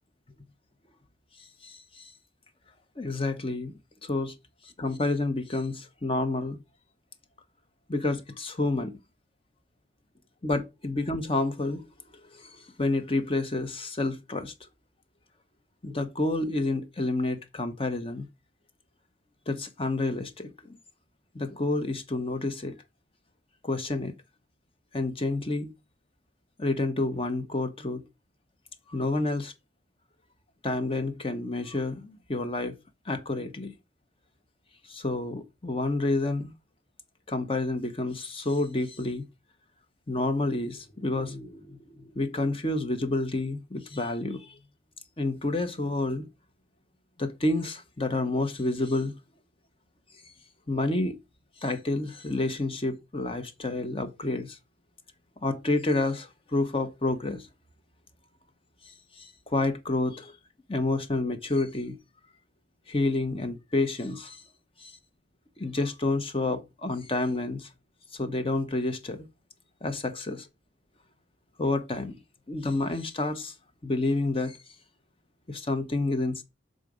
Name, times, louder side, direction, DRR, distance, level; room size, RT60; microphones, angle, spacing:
voice 1, 1.6-2.1 3.0-3.7 4.0-4.3 4.8-6.6 7.9-9.0 10.4-11.8 12.3-14.5 15.8-18.2 19.5-20.8 21.3-22.7 23.6-24.1 24.9-25.7 26.6-28.0 28.9-29.5 30.6-32.7 33.1-33.7 34.9-36.5 37.3-39.2 40.1-44.6 45.2-46.3 47.2-49.1 50.7-51.2 51.6-54.6 55.4-57.5 59.2-60.2 60.7-62.0 62.9-64.4 64.8-64.9 65.6-67.7 68.1-69.3 69.8-70.3 71.6-72.1 72.5-73.5 73.8-74.6 75.5-76.4, left 2 dB, 30° left, 0.9 m, -29 dB
6.6 x 3.8 x 4.9 m
head